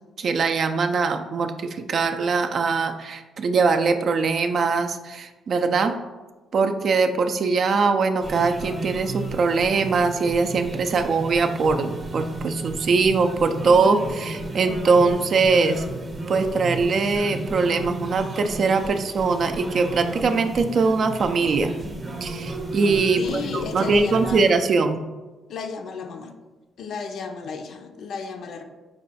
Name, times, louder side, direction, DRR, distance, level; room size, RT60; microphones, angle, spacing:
voice 1, 0.2-6.0 6.5-15.9 16.3-21.7 22.2-25.0, right 4 dB, 55° right, 7 dB, 0.3 m, -22 dB
sound 1, 8.2-24.5, right 2 dB, 30° right, 0.8 m, -33 dB
voice 2, 23.2-24.4 25.5-26.4 26.8-28.6, left 5 dB, 65° left, 6 dB, 0.4 m, -33 dB
4.6 x 2.2 x 4.1 m, 1.2 s
cardioid pair, 90°, 0 cm